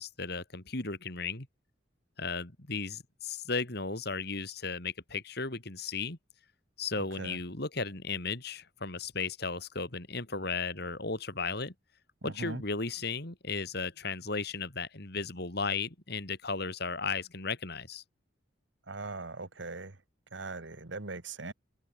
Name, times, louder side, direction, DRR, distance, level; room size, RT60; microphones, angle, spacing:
voice 1, 0.0-1.5 2.2-6.2 6.8-11.7 12.2-18.0, left 4 dB, 55° left, 3.2 m, -35 dB
voice 2, 12.2-12.6 18.9-20.0 20.3-21.5, right 3 dB, 70° right, 1.7 m, -40 dB
head